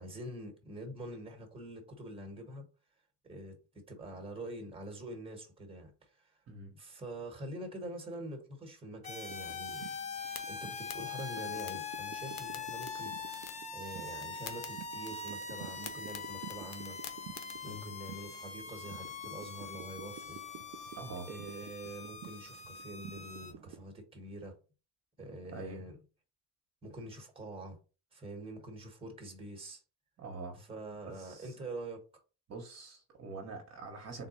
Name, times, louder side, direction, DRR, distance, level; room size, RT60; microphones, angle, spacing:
voice 1, 0.0-2.7 3.2-6.4 6.7-10.0 10.5-13.4 13.7-17.0 17.6-20.4 21.3-24.6 25.2-26.0 26.8-27.8 28.1-29.8 30.6-32.0, right 1 dB, 15° right, 1.2 m, -45 dB
sound 1, 9.0-23.5, left 5 dB, 20° left, 0.4 m, -43 dB
sound 2, 9.3-23.9, right 11 dB, 70° right, 0.5 m, -52 dB
sound 3, 9.9-17.6, left 8 dB, 65° left, 0.8 m, -51 dB
voice 2, 21.0-21.3 25.5-25.8 30.2-30.6 31.1-31.6 32.5-34.3, right 3 dB, 40° right, 0.9 m, -45 dB
3.8 x 2.2 x 4.2 m
cardioid pair, 125°, 39 cm